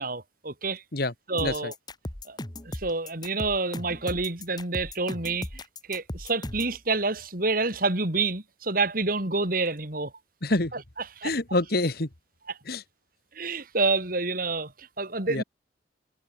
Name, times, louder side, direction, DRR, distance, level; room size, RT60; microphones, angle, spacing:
voice 1, 0.0-0.8 1.3-1.7 2.3-2.4 2.7-5.6 5.9-10.1 10.7-10.8 11.2-11.3 13.3-15.4, right 3 dB, 50° right, 3.6 m, -28 dB
voice 2, 1.4-1.7 10.4-10.7 11.2-12.1 12.7-12.8 15.3-15.4, left 2 dB, 60° left, 2.0 m, -26 dB
sound 1, 1.4-6.8, left 1 dB, 25° left, 1.8 m, -37 dB
head